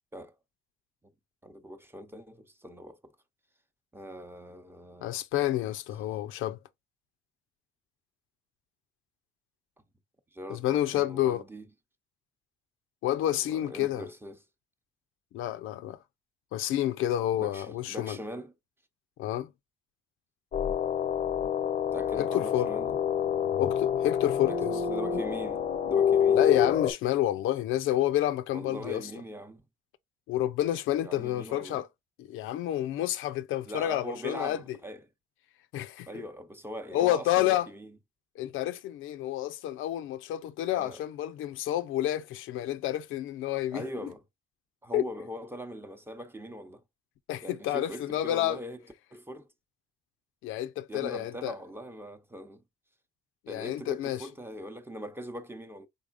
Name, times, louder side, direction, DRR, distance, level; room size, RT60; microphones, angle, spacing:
voice 1, 1.4-3.1 3.9-5.2 9.8-9.9 10.3-11.7 13.1-14.4 17.4-18.5 21.9-22.9 24.4-26.4 28.5-29.6 31.0-31.8 33.7-35.0 36.1-38.0 40.7-41.0 43.7-44.2 44.8-46.8 47.4-49.5 50.9-52.6 53.5-55.9, equal, 10° right, 0.7 m, -41 dB
voice 2, 5.0-6.6 10.5-11.4 13.0-14.1 15.3-16.0 16.5-18.2 19.2-19.5 22.1-22.7 23.6-24.8 26.4-29.0 30.3-31.9 32.2-34.6 35.7-36.1 36.9-37.7 38.4-43.8 44.9-45.0 47.3-48.6 50.4-51.6 53.5-54.3, left 13 dB, 90° left, 0.5 m, -29 dB
sound 1, 20.5-26.9, left 8 dB, 45° left, 0.6 m, -27 dB
3.8 x 3.6 x 2.4 m
cardioid pair, 90°, 20 cm